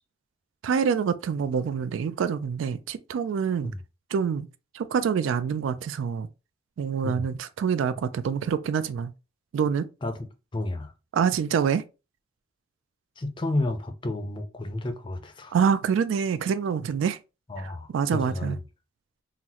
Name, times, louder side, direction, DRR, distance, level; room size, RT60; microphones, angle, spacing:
voice 1, 0.6-3.7 4.1-4.5 4.7-6.3 6.8-9.1 9.5-9.9 11.1-11.8 15.5-17.2 17.6-18.6, right 7 dB, 80° right, 0.3 m, -26 dB
voice 2, 10.5-10.9 13.2-15.6 17.5-18.6, left 2 dB, 25° left, 0.4 m, -31 dB
3.8 x 2.0 x 2.8 m
head